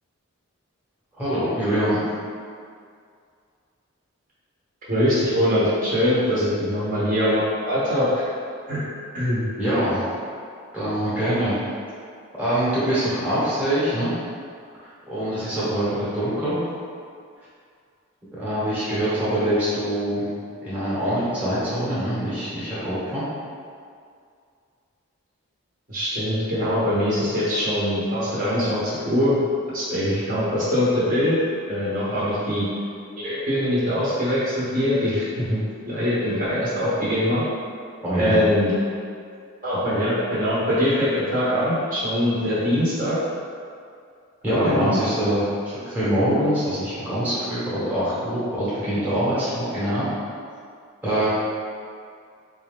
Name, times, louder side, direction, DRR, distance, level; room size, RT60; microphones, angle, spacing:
voice 1, 1.2-2.0 9.6-10.0 10.7-11.6 12.4-14.1 14.8-16.6 18.3-20.3 20.6-23.2 38.0-38.4 44.4-50.0 51.0-51.3, equal, 5° right, -11 dB, 1.0 m, -24 dB
voice 2, 4.9-8.2 8.7-8.8 9.1-9.5 25.9-29.4 29.7-31.4 31.7-32.7 33.2-37.4 38.2-38.7 39.6-43.2 44.5-45.0, equal, 40° right, -10 dB, 0.9 m, -22 dB
4.0 x 2.4 x 3.6 m, 2.2 s
head